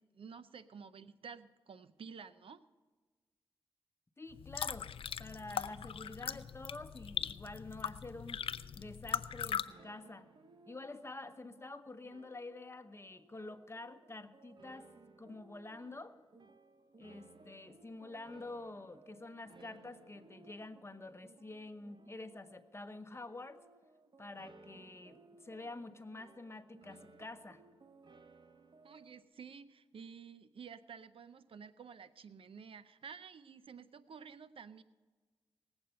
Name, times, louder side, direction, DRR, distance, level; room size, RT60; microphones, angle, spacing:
voice 1, 0.0-2.6 28.8-34.8, right 6 dB, 80° right, 13 dB, 0.5 m, -51 dB
voice 2, 4.2-4.9 5.2-8.5 8.8-10.2 10.7-14.9 15.2-16.2 17.0-23.6 24.2-27.6, left 2 dB, 30° left, 10 dB, 0.9 m, -48 dB
sound 1, 4.3-9.7, left 8 dB, 80° left, 0.4 m, -40 dB
sound 2, 9.7-29.2, right 3 dB, 55° right, 1.0 m, -61 dB
19.5 x 7.9 x 5.7 m, 1.4 s
cardioid pair, 60°, 9 cm